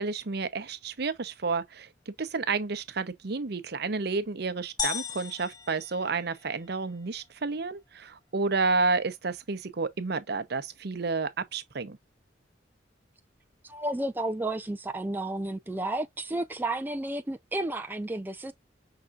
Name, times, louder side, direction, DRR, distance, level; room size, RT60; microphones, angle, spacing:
voice 1, 0.0-12.0, right 4 dB, 60° right, 0.7 m, -30 dB
sound 1, 4.8-6.7, left 7 dB, 20° left, 0.7 m, -36 dB
voice 2, 13.6-18.5, right 1 dB, 10° right, 0.3 m, -32 dB
5.7 x 3.7 x 2.4 m
head